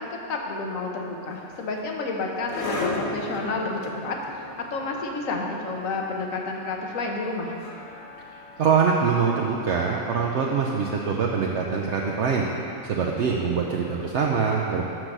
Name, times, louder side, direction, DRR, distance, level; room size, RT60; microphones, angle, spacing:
voice 1, 0.0-7.5, left 3 dB, 75° left, 1 dB, 1.3 m, -30 dB
sound 1, 1.3-12.4, left 2 dB, 60° left, 1.1 m, -38 dB
voice 2, 8.6-12.5 12.8-14.8, right 6 dB, 65° right, -1 dB, 0.8 m, -24 dB
6.6 x 6.2 x 6.0 m, 2.7 s
omnidirectional pair, 1.4 m